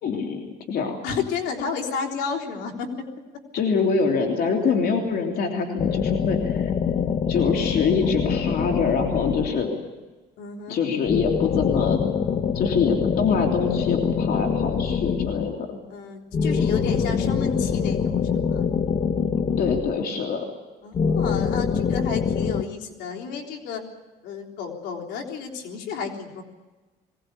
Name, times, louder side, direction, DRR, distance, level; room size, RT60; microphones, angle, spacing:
voice 1, 0.0-1.0 3.5-6.7 7.3-9.7 10.7-12.2 12.5-15.8 19.6-20.5, left 5 dB, 65° left, 2 dB, 3.1 m, -25 dB
voice 2, 1.0-3.1 10.4-10.8 15.9-18.7 20.8-23.8 24.2-26.4, left 5 dB, 85° left, -1 dB, 3.7 m, -32 dB
sound 1, 5.8-10.0 11.1-15.7 16.3-20.3 20.9-22.6, left 6 dB, 40° left, 1.0 m, -24 dB
22.0 x 18.5 x 8.3 m, 1.2 s
cardioid pair, 110°, 17 cm